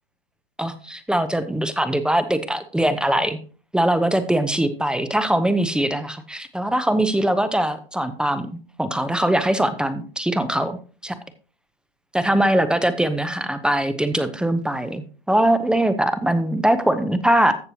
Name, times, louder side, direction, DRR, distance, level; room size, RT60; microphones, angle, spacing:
voice 1, 0.6-3.4 3.7-11.1 12.1-17.6, right 1 dB, 5° right, 11 dB, 0.6 m, -22 dB
14.5 x 6.7 x 2.9 m, 0.37 s
hypercardioid pair, 110°, 30 cm